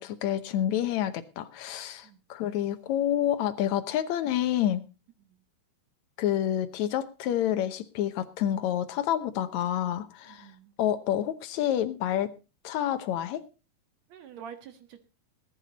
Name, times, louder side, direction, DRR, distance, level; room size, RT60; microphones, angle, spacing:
voice 1, 0.0-4.9 6.2-10.5 10.8-12.3 12.6-13.4, left 11 dB, 75° left, 10 dB, 1.7 m, -28 dB
voice 2, 10.3-10.7 14.1-15.0, right 8 dB, 55° right, 8 dB, 2.3 m, -46 dB
19.0 x 10.0 x 4.1 m, 0.32 s
omnidirectional pair, 4.4 m